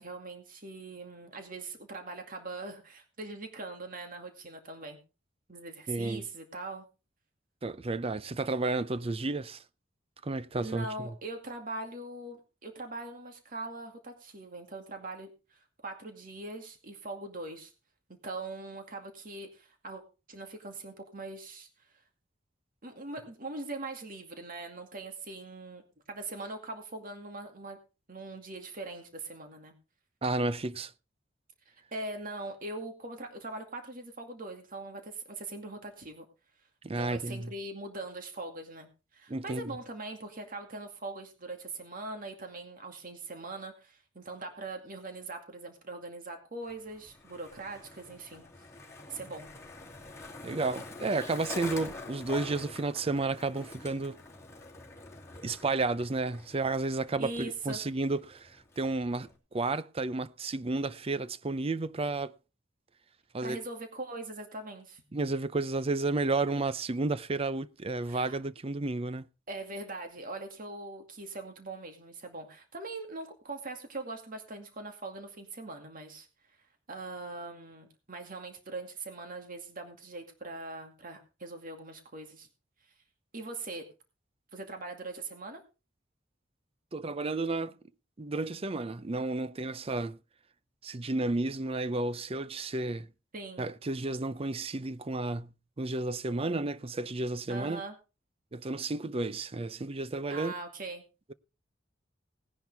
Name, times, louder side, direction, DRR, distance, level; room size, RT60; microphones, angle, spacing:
voice 1, 0.0-5.0 5.5-6.9 10.6-17.7 18.1-20.0 20.3-21.9 22.8-27.8 28.1-29.7 31.9-36.2 36.9-48.4 49.1-49.5 57.2-57.8 63.4-65.0 68.1-68.4 69.5-76.3 76.9-82.5 83.3-83.9 84.5-85.6 93.3-93.6 97.5-97.9 100.3-101.0, right 2 dB, 45° right, 2.3 m, -41 dB
voice 2, 5.9-6.2 7.6-9.6 10.2-11.1 30.2-30.9 36.8-37.5 39.3-39.7 50.4-54.2 55.4-62.3 63.3-63.6 65.1-69.3 86.9-87.7 88.2-90.2 90.8-93.1 93.6-97.8 98.5-100.5, right 3 dB, 30° right, 0.6 m, -32 dB
Skateboard, 46.6-59.4, left 3 dB, 15° left, 2.8 m, -46 dB
18.0 x 10.5 x 3.5 m
head